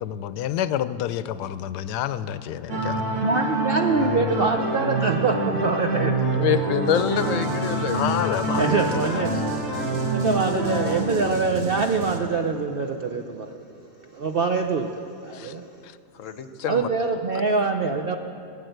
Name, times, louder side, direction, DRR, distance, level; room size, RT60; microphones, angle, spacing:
voice 1, 0.0-3.2 7.9-8.8 15.3-15.5 15.8-15.9, left 11 dB, 85° left, 14 dB, 1.2 m, -29 dB
sound 1, 2.7-11.0, right 2 dB, 35° right, 2.8 m, -26 dB
voice 2, 3.2-6.1 6.4-6.5 8.5-9.4 10.0-13.7 14.0-15.8 16.7-18.2, right 4 dB, 55° right, 4 dB, 0.6 m, -24 dB
voice 3, 6.3-8.1 16.1-16.9, left 7 dB, 60° left, 10 dB, 1.0 m, -25 dB
sound 2, 6.9-12.2, right 3 dB, 90° right, 1.7 m, -36 dB
18.5 x 9.0 x 7.9 m, 2.6 s
omnidirectional pair, 1.7 m